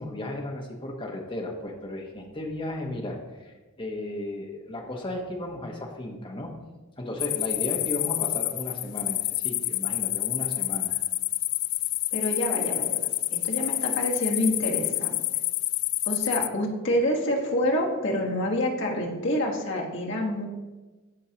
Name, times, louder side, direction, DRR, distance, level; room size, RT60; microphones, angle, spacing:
voice 1, 0.0-6.5 7.0-11.0, left 1 dB, 25° left, 1 dB, 1.0 m, -35 dB
sound 1, 7.2-16.5, left 17 dB, 85° left, 0.3 m, -28 dB
voice 2, 12.1-15.1 16.0-20.5, left 1 dB, 60° left, -1 dB, 1.3 m, -27 dB
14.0 x 4.7 x 2.9 m, 1.2 s
head